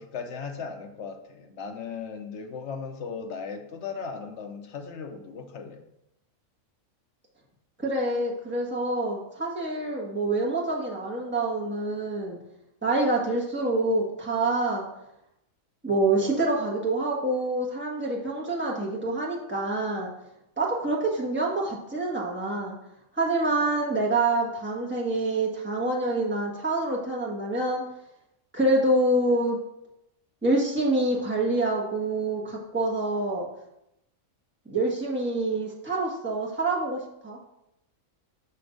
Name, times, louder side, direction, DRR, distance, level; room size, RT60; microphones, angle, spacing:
voice 1, 0.0-5.9, left 5 dB, 55° left, 5 dB, 1.0 m, -37 dB
voice 2, 7.8-12.4 12.8-14.9 15.8-20.1 20.6-22.8 23.1-27.8 28.5-29.6 30.4-33.5 34.7-37.4, right 2 dB, 10° right, -5 dB, 1.6 m, -26 dB
6.1 x 4.3 x 6.4 m, 0.84 s
omnidirectional pair, 1.5 m